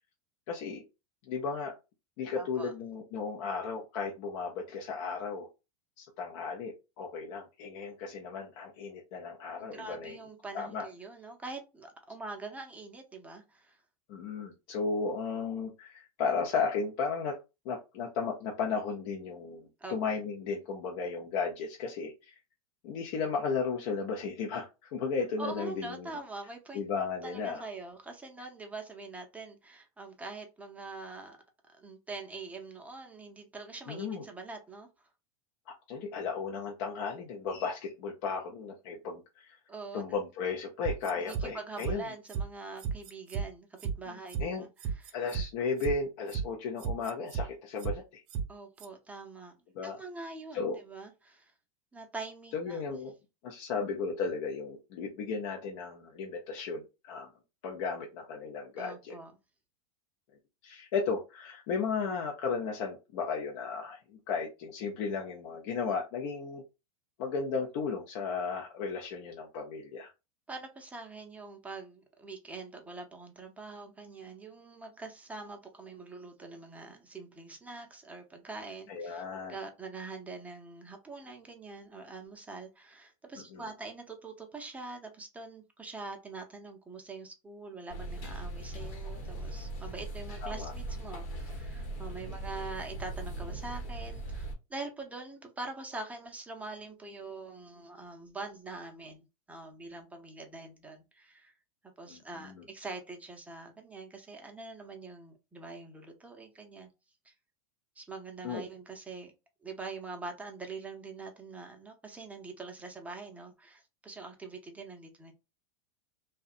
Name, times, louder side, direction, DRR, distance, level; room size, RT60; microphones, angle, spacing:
voice 1, 0.5-0.8 1.3-1.8 2.2-5.5 6.0-10.2 10.5-10.8 14.1-17.4 17.6-22.3 22.8-26.1 26.7-27.6 33.9-34.2 35.9-39.6 39.9-42.0 44.4-44.6 45.1-48.2 49.7-50.0 50.5-50.8 52.5-53.1 53.4-57.3 57.6-59.1 60.6-66.6 67.2-70.1 78.9-79.5 83.5-83.6 90.4-90.7 92.3-92.4 102.1-102.6 108.4-108.6, left 5 dB, 55° left, 0.6 m, -35 dB
voice 2, 2.4-2.7 9.6-13.8 19.8-20.0 25.4-26.8 27.2-31.4 31.7-34.9 39.7-40.0 41.1-45.1 48.5-49.6 49.8-51.5 51.9-52.8 58.8-59.3 70.5-101.6 101.8-106.9 107.2-107.3 108.0-109.3 109.6-115.3, right 3 dB, 10° right, 0.6 m, -44 dB
sound 1, 40.8-41.4 41.8-41.9 42.3-42.4 42.8-43.4 43.8-43.9 44.3-44.4 44.8-45.4 45.8-45.9 46.3-46.4 46.8-47.4 47.8-47.9 48.3-48.4 48.8-48.9, right 6 dB, 45° right, 0.7 m, -33 dB
sound 2, 87.9-94.5, right 2 dB, 70° left, 1.0 m, -39 dB
2.7 x 2.2 x 2.4 m
supercardioid pair, 130°, 18 cm